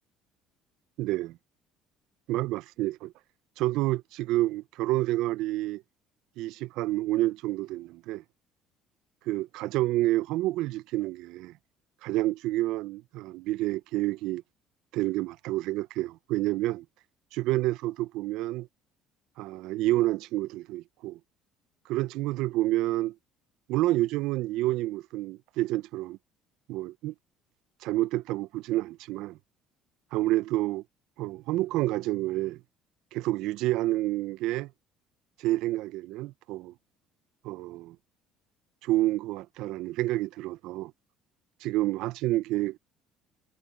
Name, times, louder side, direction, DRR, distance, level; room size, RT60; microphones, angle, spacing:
voice 1, 1.0-1.4 2.3-3.1 3.6-5.8 6.4-8.2 9.3-11.5 12.0-14.4 14.9-16.8 17.3-18.7 19.4-21.2 21.9-23.1 23.7-26.2 26.7-27.1 27.8-29.4 30.1-30.8 31.2-32.6 33.1-34.7 35.4-36.7 37.4-38.0 38.8-40.9 41.6-42.8, right 17 dB, 75° right, 0.4 m, -29 dB
cardioid pair, 135°, 0 cm